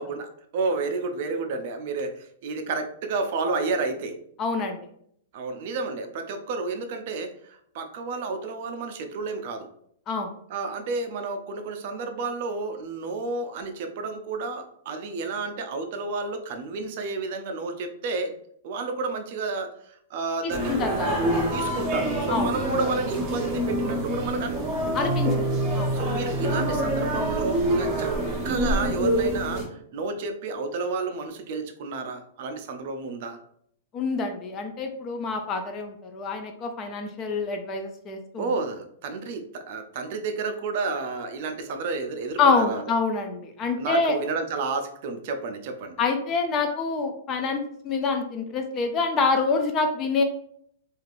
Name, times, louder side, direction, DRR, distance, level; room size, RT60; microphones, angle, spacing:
voice 1, 0.0-4.2 5.3-9.7 10.5-18.3 18.6-21.2 21.5-24.6 24.9-25.1 25.9-28.1 28.4-33.4 38.4-42.9 43.8-46.0, right 3 dB, 50° right, 6 dB, 0.4 m, -31 dB
voice 2, 4.4-4.8 10.1-10.3 20.4-21.1 22.3-22.5 24.9-25.3 25.7-25.9 33.9-38.5 42.4-44.1 46.0-50.2, left 4 dB, 25° left, 5 dB, 0.4 m, -26 dB
sound 1, 20.5-29.6, right 1 dB, 30° right, 0.8 m, -26 dB
3.2 x 2.4 x 2.5 m, 0.67 s
hypercardioid pair, 160°, 0 cm